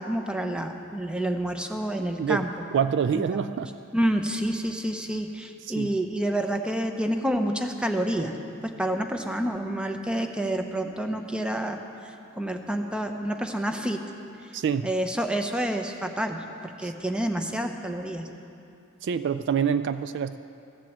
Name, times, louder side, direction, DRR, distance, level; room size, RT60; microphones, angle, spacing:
voice 1, 0.0-2.5 3.1-3.6 3.9-8.3 8.6-11.8 12.4-14.0 14.8-18.3, right 1 dB, 5° right, 5 dB, 0.7 m, -28 dB
voice 2, 2.7-3.7 5.8-5.9 14.5-14.9 19.0-20.4, right 7 dB, 55° right, 11 dB, 0.3 m, -26 dB
14.5 x 7.5 x 7.4 m, 2.6 s
head